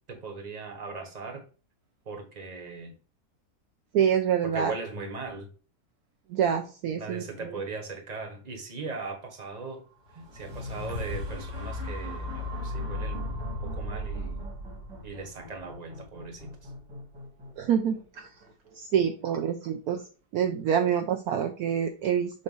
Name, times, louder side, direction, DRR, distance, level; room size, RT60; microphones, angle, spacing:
voice 1, 0.1-1.4 2.0-3.0 4.4-5.5 7.0-9.8 10.1-13.4 13.6-14.5 15.0-16.5, right 3 dB, 25° right, 1.3 m, -39 dB
voice 2, 3.9-4.7 6.3-7.2 17.6-18.3 18.8-20.0 20.3-22.4, right 8 dB, 70° right, 1.0 m, -26 dB
sound 1, 10.1-18.2 18.7-18.8, left 1 dB, 85° right, 3.1 m, -36 dB
6.9 x 2.5 x 5.4 m
omnidirectional pair, 1.8 m